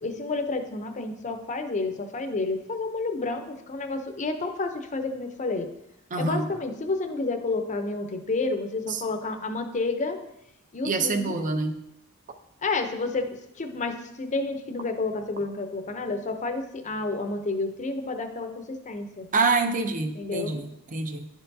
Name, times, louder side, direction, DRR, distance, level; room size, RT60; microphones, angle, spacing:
voice 1, 0.0-5.7 6.1-10.2 10.7-11.5 12.6-13.3 13.6-19.3 20.1-20.6, left 3 dB, 35° left, 6 dB, 0.6 m, -30 dB
voice 2, 6.1-6.5 8.9-9.0 10.8-11.8 19.3-21.3, right 3 dB, 35° right, 7 dB, 0.6 m, -26 dB
11.0 x 4.5 x 2.7 m, 0.83 s
head